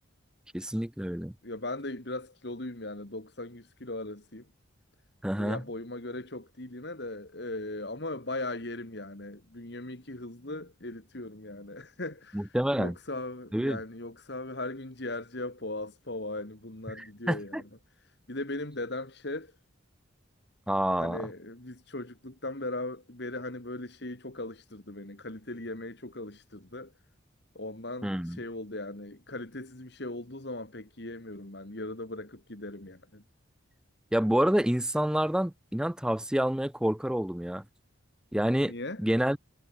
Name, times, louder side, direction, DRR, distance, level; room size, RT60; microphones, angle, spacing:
voice 1, 0.5-1.3 5.2-5.6 12.3-12.9 13.5-13.8 16.9-17.6 20.7-21.2 28.0-28.4 34.1-37.6 38.3-38.7 39.0-39.4, equal, 5° right, 0.4 m, -28 dB
voice 2, 1.4-4.5 5.4-17.6 18.0-19.6 21.0-26.9 27.5-33.2 38.7-39.0, left 2 dB, 55° left, 2.3 m, -38 dB
head